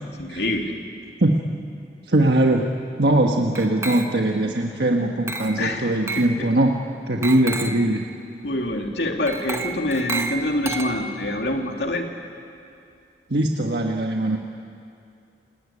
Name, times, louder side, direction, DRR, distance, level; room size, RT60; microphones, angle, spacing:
voice 1, 0.2-0.7 5.6-6.5 8.4-12.1, left 1 dB, 75° left, 2 dB, 2.7 m, -26 dB
voice 2, 2.1-2.7 3.0-6.8 7.1-8.0 13.3-14.4, right 1 dB, 70° right, 2 dB, 1.4 m, -21 dB
Glass, 3.5-4.4 5.3-5.7 6.1-6.4 7.2-7.9 9.3-11.3, right 3 dB, 15° right, 1.1 m, -31 dB
28.5 x 19.0 x 9.9 m, 2.5 s
head